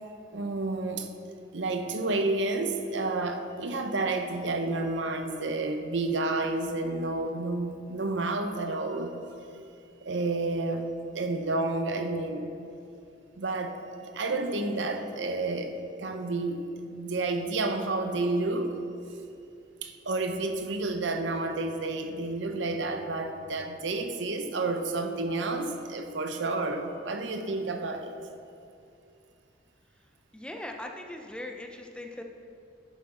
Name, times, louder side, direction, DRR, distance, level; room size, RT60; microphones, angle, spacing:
voice 1, 0.3-1.1 1.5-9.2 10.0-10.9 11.1-12.5 13.4-15.7 16.0-18.8 19.8-28.2, right 2 dB, 70° right, 6 dB, 0.7 m, -30 dB
voice 2, 30.3-32.2, left 1 dB, 5° left, 3 dB, 0.5 m, -40 dB
10.5 x 8.1 x 3.8 m, 2.6 s
head